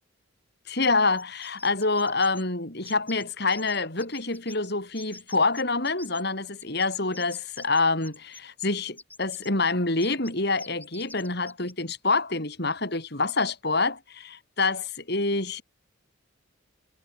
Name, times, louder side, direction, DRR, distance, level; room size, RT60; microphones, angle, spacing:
voice 1, 0.7-15.6, left 3 dB, 50° left, 3.8 m, -26 dB
sound 1, 1.2-2.4 2.8-3.3 3.5-4.7 4.9-6.2 6.6-8.7 8.9-9.5 10.0-10.3 10.6-11.7, left 3 dB, 10° left, 7.3 m, -47 dB
head